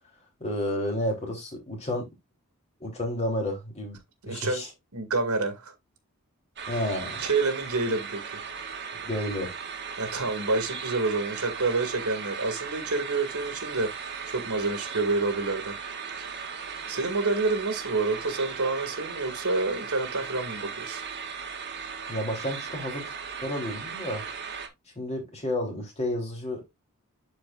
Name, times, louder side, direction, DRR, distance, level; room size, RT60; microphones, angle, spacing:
voice 1, 0.4-2.1 2.8-4.0 4.3-4.7 6.7-7.2 8.9-9.5 22.1-23.1 23.4-24.2 24.9-26.6, left 1 dB, 30° left, 3.2 m, -31 dB
voice 2, 4.2-4.6 4.9-5.7 6.7-6.8 7.2-8.2 10.0-15.8 16.2-16.6 16.9-21.0, right 3 dB, 85° right, 2.1 m, -28 dB
sound 1, 6.6-24.7, right 6 dB, 50° right, 1.7 m, -37 dB
12.0 x 4.7 x 2.4 m
head